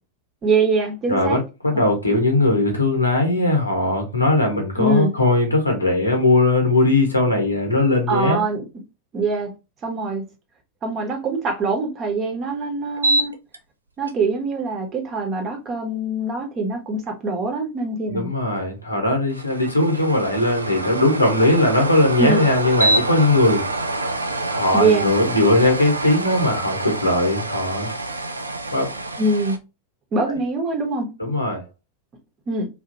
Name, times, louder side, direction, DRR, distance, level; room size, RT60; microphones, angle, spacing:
voice 1, 0.4-1.4 1.7-1.8 4.8-5.2 8.1-8.6 9.1-9.5 9.8-10.2 10.8-13.3 14.0-18.3 22.2-22.5 24.7-25.1 29.2-29.6 30.1-31.1 32.5-32.7, right 3 dB, 30° right, 0.9 m, -23 dB
voice 2, 1.1-8.4 18.1-23.6 24.5-27.9 28.7-28.9 31.2-31.6, left 2 dB, 85° left, 1.0 m, -19 dB
sound 1, 13.0-13.6 14.1-14.2 19.3-29.6, right 2 dB, 80° right, 0.3 m, -26 dB
2.9 x 2.4 x 2.5 m
figure-of-eight pair, 90°, 0 cm